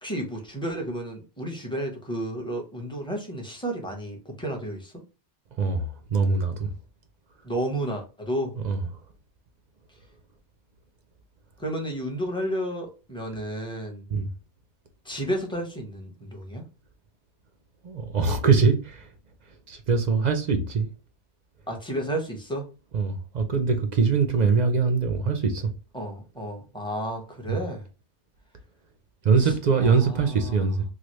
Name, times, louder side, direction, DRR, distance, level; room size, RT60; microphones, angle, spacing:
voice 1, 0.0-4.9 7.4-8.5 11.6-14.0 15.0-16.6 21.7-22.7 25.9-27.8 29.4-30.6, right 1 dB, 5° left, 0.7 m, -32 dB
voice 2, 5.6-6.7 8.6-8.8 14.1-14.3 17.8-19.1 19.7-20.9 22.9-25.7 27.5-27.6 29.2-30.8, right 5 dB, 50° right, 0.5 m, -23 dB
3.2 x 2.3 x 3.0 m
omnidirectional pair, 1.2 m